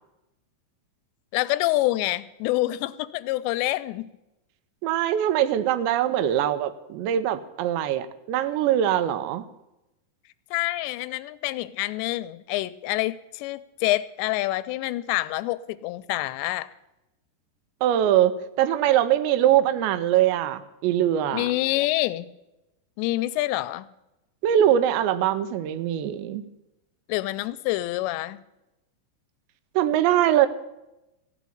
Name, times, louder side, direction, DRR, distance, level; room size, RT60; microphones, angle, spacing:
voice 1, 1.3-4.1 10.5-16.7 21.3-22.3 23.0-23.9 27.1-28.4, left 17 dB, 90° left, 15 dB, 2.8 m, -27 dB
voice 2, 4.8-9.4 17.8-18.3 18.6-21.5 24.4-26.4 29.8-30.5, right 11 dB, 85° right, 13 dB, 3.0 m, -22 dB
14.5 x 6.2 x 10.0 m, 0.94 s
omnidirectional pair, 5.0 m